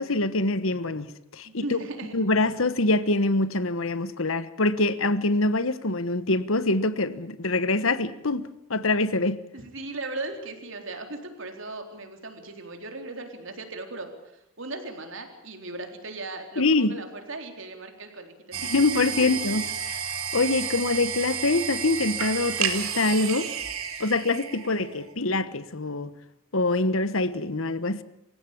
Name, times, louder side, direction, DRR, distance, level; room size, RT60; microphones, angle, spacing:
voice 1, 0.0-1.8 2.1-9.4 16.6-16.9 18.6-23.5 24.0-26.1 26.5-28.0, left 2 dB, 70° left, 1.3 m, -25 dB
voice 2, 1.4-2.1 9.5-19.3 20.6-20.8 24.5-25.1, right 2 dB, 60° right, 4.0 m, -38 dB
sound 1, 18.5-25.1, right 7 dB, 80° right, 3.1 m, -31 dB
27.0 x 16.0 x 8.6 m
head